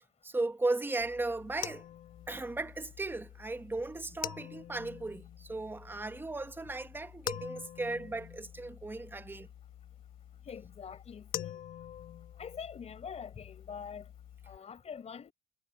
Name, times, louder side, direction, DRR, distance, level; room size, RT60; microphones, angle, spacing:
voice 1, 0.2-1.8 2.3-9.5, right 2 dB, 10° right, 0.9 m, -36 dB
sound 1, 1.0-14.6, left 11 dB, 55° left, 1.1 m, -46 dB
voice 2, 10.5-11.6 12.4-14.1 14.5-15.3, left 7 dB, 40° left, 4.4 m, -44 dB
cardioid pair, 110°, 17 cm